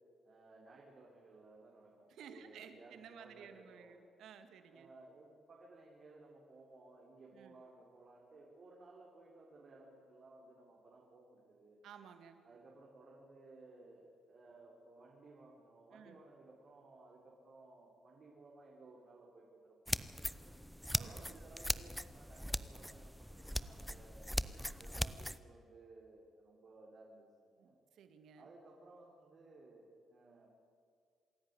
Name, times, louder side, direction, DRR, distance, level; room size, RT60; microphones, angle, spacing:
voice 1, 0.2-4.0 4.7-11.8 12.4-20.5 20.9-24.3 24.8-27.7 28.3-30.5, right 2 dB, 50° right, -3 dB, 4.2 m, -59 dB
voice 2, 2.1-4.9 7.3-7.6 11.8-12.4 15.9-16.2 20.9-21.4 27.6-28.5, right 7 dB, 75° right, 8 dB, 1.8 m, -55 dB
sound 1, 19.9-25.4, equal, ahead, 0.7 m, -40 dB
26.5 x 11.0 x 9.8 m, 2.2 s
cardioid pair, 90°, 0 cm